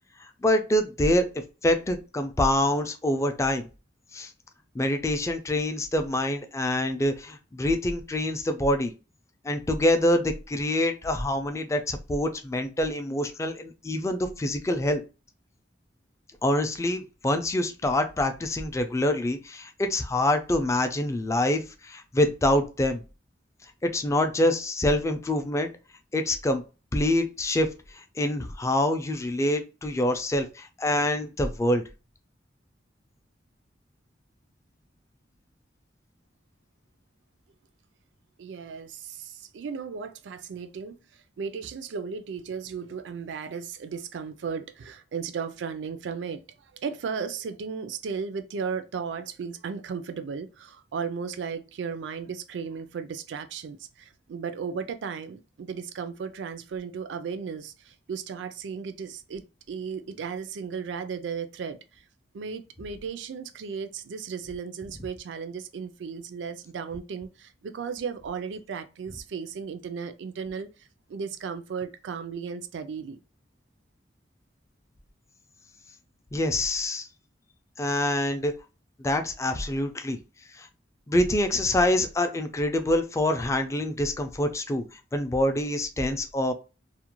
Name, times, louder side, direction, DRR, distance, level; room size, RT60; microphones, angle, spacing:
voice 1, 0.4-1.3 1.6-3.7 4.1-4.3 4.7-8.9 9.4-15.0 16.4-23.0 23.8-25.7 26.1-26.6 26.9-27.7 28.0-31.8 76.3-77.1 77.8-78.5 79.0-80.2 80.6-80.7 81.1-84.8 85.1-86.5, left 1 dB, 15° left, 0.3 m, -25 dB
voice 2, 38.4-41.0 41.4-62.0 62.3-70.7 71.1-73.2, right 6 dB, 85° right, 0.3 m, -35 dB
2.4 x 2.1 x 2.9 m
head